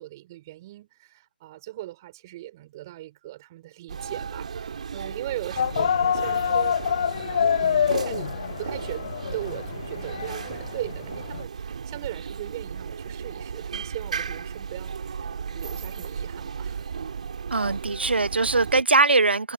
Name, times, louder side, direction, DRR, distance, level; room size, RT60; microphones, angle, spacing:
voice 1, 0.0-6.8 7.5-8.3 8.6-16.8, right 16 dB, 20° right, 5.1 m, -39 dB
sound 1, 3.9-18.8, right 6 dB, 40° right, 4.2 m, -35 dB
sound 2, 5.6-11.4, left 8 dB, 25° left, 0.3 m, -26 dB
voice 2, 17.5-19.5, right 3 dB, 85° right, 0.5 m, -21 dB
figure-of-eight pair, 160°, 6 cm